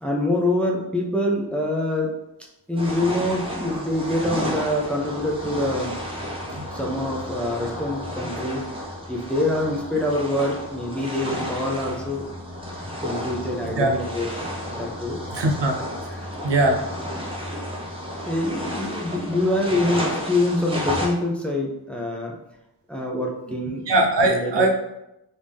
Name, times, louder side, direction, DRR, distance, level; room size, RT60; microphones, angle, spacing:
voice 1, 0.0-2.2 2.7-6.0 6.7-8.6 9.1-12.3 12.8-15.2 16.2-16.3 18.3-22.4 22.9-23.9 24.2-24.7, left 1 dB, 5° left, -1 dB, 0.6 m, -25 dB
sound 1, 2.8-21.1, equal, 15° right, 1.0 m, -32 dB
voice 2, 15.3-15.8 16.4-16.8 23.9-24.7, right 2 dB, 90° right, 2 dB, 0.7 m, -20 dB
3.3 x 2.7 x 3.5 m, 0.88 s
wide cardioid pair, 65°, 41 cm